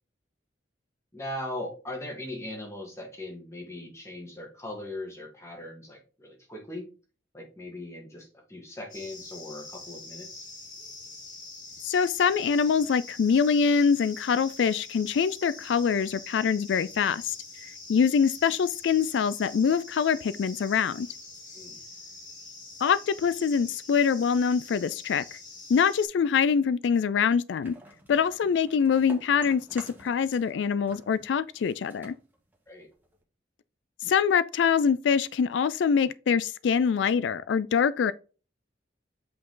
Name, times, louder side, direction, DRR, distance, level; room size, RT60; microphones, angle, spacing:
voice 1, 1.1-6.9 7.3-10.5 21.5-21.8 32.7-32.9, left 1 dB, 15° left, 1.9 m, -39 dB
sound 1, 8.9-26.0, left 3 dB, 45° left, 2.5 m, -45 dB
voice 2, 11.8-21.1 22.8-25.4 25.7-27.7 28.1-32.1 34.0-38.1, left 6 dB, 80° left, 0.3 m, -24 dB
sound 2, 27.6-30.6 30.8-33.2, right 1 dB, 10° right, 1.7 m, -49 dB
8.2 x 5.0 x 3.8 m
head